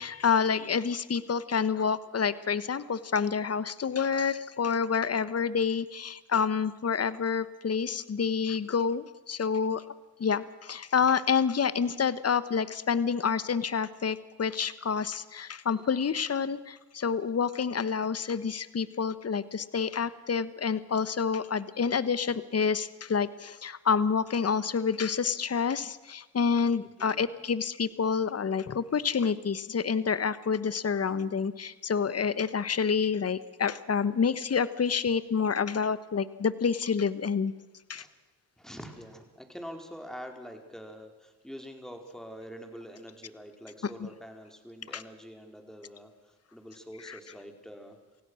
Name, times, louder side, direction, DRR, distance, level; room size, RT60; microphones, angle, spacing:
voice 1, 0.0-9.8 10.2-37.5 37.9-38.0 44.0-44.1 44.9-45.0 47.1-47.2, left 6 dB, 30° left, 16 dB, 1.3 m, -28 dB
voice 2, 38.6-48.0, equal, ahead, 4 dB, 4.8 m, -45 dB
28.0 x 16.5 x 6.4 m, 1.2 s
supercardioid pair, 55°, 45 cm